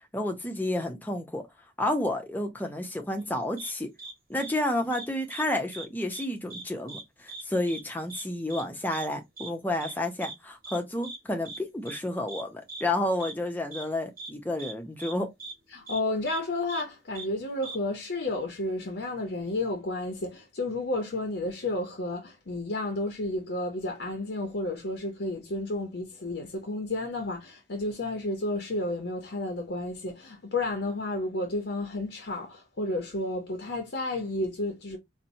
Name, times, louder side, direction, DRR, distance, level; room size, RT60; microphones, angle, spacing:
voice 1, 0.1-1.5 1.8-3.9 4.3-15.3, left 1 dB, 10° left, 0.6 m, -30 dB
sound 1, 3.6-3.7 4.0-4.1 4.4-4.5 4.9-5.4 5.7-5.9 6.1-6.6 6.9-7.0 7.3-7.4 7.7-7.8 8.1-8.2 8.5-8.6 8.9-9.1 9.4-9.5 9.8-9.9 10.2-10.3 10.6-10.8 11.0-11.2 11.5-11.6 11.9-12.0 12.3-12.4 12.7-12.8 13.2-13.3 13.7-13.8 14.2-14.3 14.6-14.7 15.0-15.1 15.4-15.5 15.9-16.0 16.3-16.4 16.7-16.8 17.2-17.3 17.6-17.8, right 3 dB, 45° right, 1.3 m, -40 dB
voice 2, 15.7-35.0, left 2 dB, 60° left, 0.7 m, -31 dB
4.1 x 2.1 x 2.6 m
head